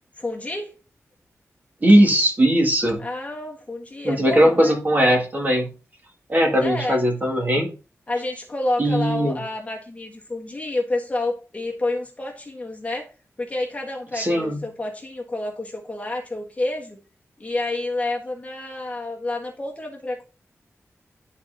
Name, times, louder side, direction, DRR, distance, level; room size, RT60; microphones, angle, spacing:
voice 1, 0.2-0.7 3.0-4.8 6.5-7.0 8.1-13.1 13.4-17.0 17.4-20.2, left 2 dB, 25° left, -1 dB, 1.5 m, -29 dB
voice 2, 1.8-3.0 4.0-5.7 6.3-7.7 8.8-9.4 14.1-14.6, equal, 35° right, 2 dB, 1.6 m, -19 dB
11.0 x 4.1 x 2.6 m, 0.33 s
wide cardioid pair, 130°, 5 cm